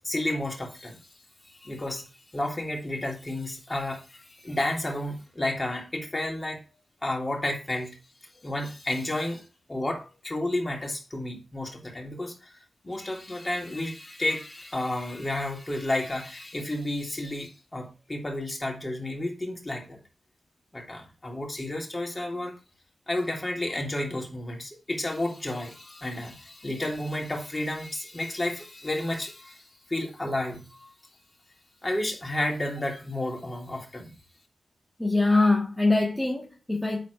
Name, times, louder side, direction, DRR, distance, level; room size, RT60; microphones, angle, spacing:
voice 1, 0.0-1.1 1.4-6.6 7.0-8.0 8.4-20.0 20.7-22.6 23.1-30.9 31.8-34.1, left 1 dB, 25° left, 3.0 m, -31 dB
voice 2, 35.0-37.1, left 2 dB, 5° left, 1.6 m, -23 dB
9.4 x 4.2 x 4.7 m
cardioid pair, 70°, 0 cm